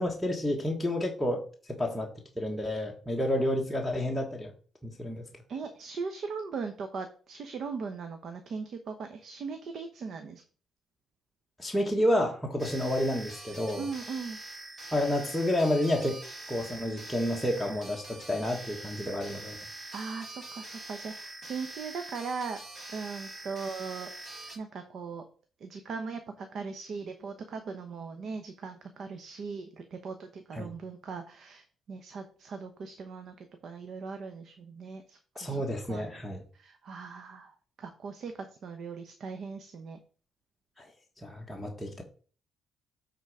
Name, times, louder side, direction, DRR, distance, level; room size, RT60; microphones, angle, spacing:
voice 1, 0.0-4.5 4.8-5.3 11.6-13.8 14.9-16.2 16.5-19.6 30.5-30.7 35.4-36.4 40.8-40.9 41.2-42.0, left 1 dB, ahead, -2 dB, 1.4 m, -30 dB
voice 2, 5.5-10.4 13.8-14.4 19.9-22.6 22.9-24.1 24.5-25.2 25.6-35.6 35.9-36.0 36.5-40.0, right 5 dB, 60° right, 7 dB, 0.9 m, -39 dB
sound 1, 12.6-24.6, right 2 dB, 35° right, 3.0 m, -44 dB
8.3 x 3.8 x 4.8 m, 0.41 s
cardioid pair, 90°, 0 cm